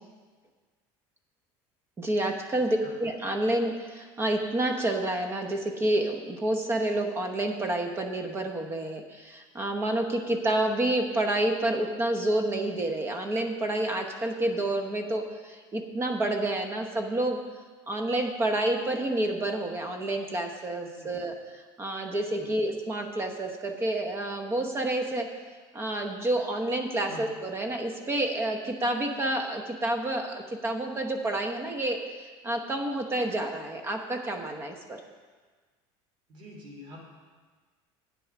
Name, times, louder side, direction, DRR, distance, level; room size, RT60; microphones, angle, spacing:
voice 1, 2.0-17.4 17.9-21.3 21.8-25.3 25.7-32.0 32.4-35.0, right 1 dB, 25° right, 4 dB, 0.9 m, -29 dB
voice 2, 20.9-21.3 22.3-22.5 27.1-27.3 36.3-37.0, left 1 dB, 50° right, 0 dB, 3.0 m, -46 dB
8.6 x 7.7 x 5.9 m, 1.4 s
supercardioid pair, 135°, 11 cm